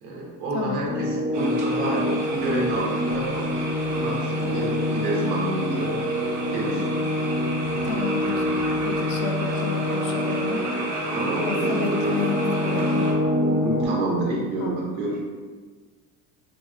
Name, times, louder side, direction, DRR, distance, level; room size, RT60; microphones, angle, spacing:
voice 1, 0.0-3.5 3.9-6.0 6.5-6.8 11.1-12.2 13.5-15.2, right 1 dB, 85° right, -4 dB, 1.1 m, -28 dB
sound 1, 0.9-13.9, left 1 dB, 35° left, 0.9 m, -26 dB
sound 2, 1.3-13.1, right 2 dB, 65° right, 0.8 m, -33 dB
sound 3, 2.2-4.9 7.5-9.8, right 1 dB, 5° left, 0.6 m, -43 dB
voice 2, 7.8-10.6 11.5-13.0 14.6-14.8, left 5 dB, 70° left, 4 dB, 0.5 m, -31 dB
3.3 x 2.1 x 3.4 m, 1.4 s
cardioid pair, 180°, 41 cm